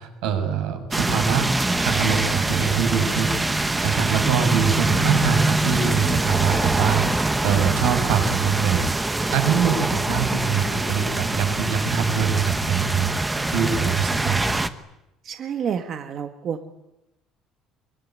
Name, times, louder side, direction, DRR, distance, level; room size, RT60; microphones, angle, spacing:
voice 1, 0.0-3.3 3.6-7.0 7.4-8.8 9.3-13.1 13.5-14.4, right 7 dB, 85° right, 6 dB, 6.5 m, -23 dB
sound 1, 0.9-14.7, right 2 dB, 10° right, 1.1 m, -24 dB
voice 2, 15.2-16.7, right 7 dB, 35° right, 7 dB, 1.5 m, -29 dB
24.5 x 23.5 x 9.6 m, 0.90 s
cardioid pair, 175°, 0 cm